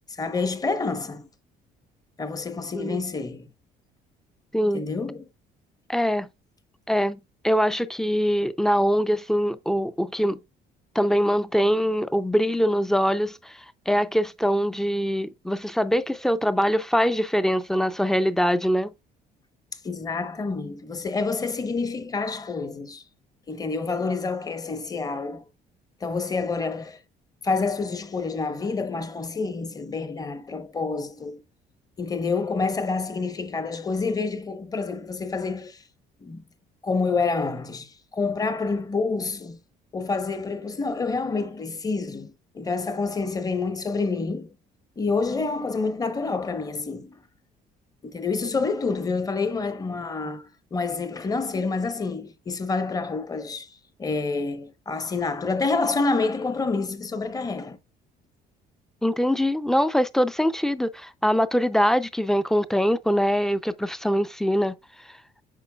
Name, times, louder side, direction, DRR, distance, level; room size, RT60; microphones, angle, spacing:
voice 1, 0.1-1.3 2.2-3.5 4.7-5.3 19.8-23.0 23.5-25.5 26.0-27.0 27.4-31.4 32.0-35.8 36.2-36.4 36.8-39.6 39.9-44.5 45.0-47.2 48.0-57.8, left 4 dB, 20° left, 0.8 m, -28 dB
voice 2, 4.5-4.8 5.9-6.3 6.9-10.4 10.9-18.9 59.0-64.8 65.1-65.2, equal, 5° left, 0.4 m, -23 dB
8.3 x 5.3 x 2.3 m
cardioid pair, 110°, 17 cm